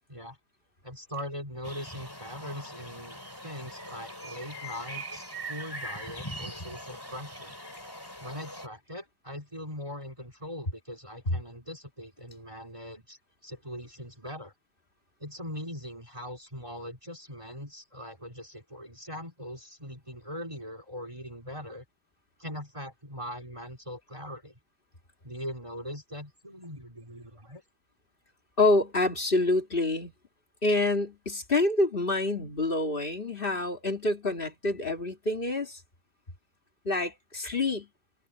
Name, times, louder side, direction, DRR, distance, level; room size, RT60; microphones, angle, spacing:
voice 1, 0.8-5.2 5.5-7.5 8.2-14.5 15.2-21.8 22.4-24.5 25.2-27.6, equal, 15° right, 2.7 m, -41 dB
sound 1, 1.6-8.7, right 1 dB, 10° left, 4.0 m, -41 dB
voice 2, 28.6-30.1 30.6-35.8 36.8-37.9, left 2 dB, 25° left, 2.6 m, -27 dB
omnidirectional pair, 2.2 m